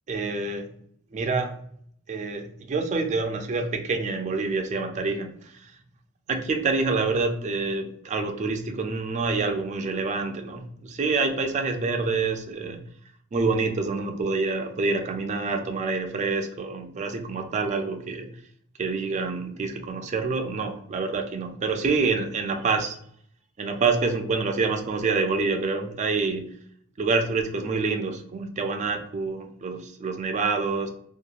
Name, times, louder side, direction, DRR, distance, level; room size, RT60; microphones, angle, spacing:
voice 1, 0.1-0.7 1.1-1.6 2.1-5.7 6.3-12.8 13.3-18.3 18.8-23.0 23.6-26.5 27.0-30.9, right 4 dB, 35° right, 5 dB, 0.4 m, -27 dB
2.8 x 2.2 x 2.3 m, 0.65 s
head